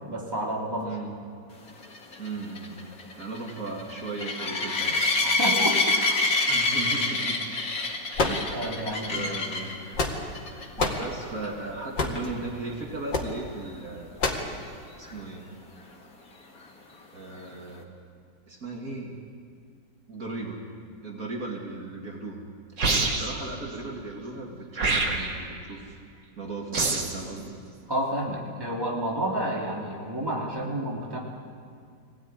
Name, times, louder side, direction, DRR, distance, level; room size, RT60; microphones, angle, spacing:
voice 1, 0.1-0.9 5.2-5.8 8.5-9.3 27.9-31.2, right 1 dB, 10° right, -2 dB, 3.0 m, -30 dB
voice 2, 0.8-1.1 2.2-2.9 3.2-5.0 6.5-7.5 8.2-8.6 9.1-9.9 10.8-14.3 15.0-15.5 17.1-17.9 18.5-19.3 20.1-20.6 21.0-22.4 23.0-26.0 26.4-27.5, right 3 dB, 50° right, -1 dB, 2.6 m, -37 dB
sound 1, 1.8-9.8 10.3-10.7 10.9-11.0 11.4-11.5 15.1-15.2, left 2 dB, 55° left, 2.7 m, -26 dB
sound 2, 8.1-8.9 9.7-10.4 10.8-11.1 12.0-12.3 13.1-13.3 14.2-14.5, left 3 dB, 85° left, 2.8 m, -27 dB
sound 3, 22.8-23.5 24.8-25.5 26.7-27.2, right 3 dB, 85° right, 2.8 m, -25 dB
23.5 x 17.5 x 9.6 m, 2.2 s
omnidirectional pair, 1.9 m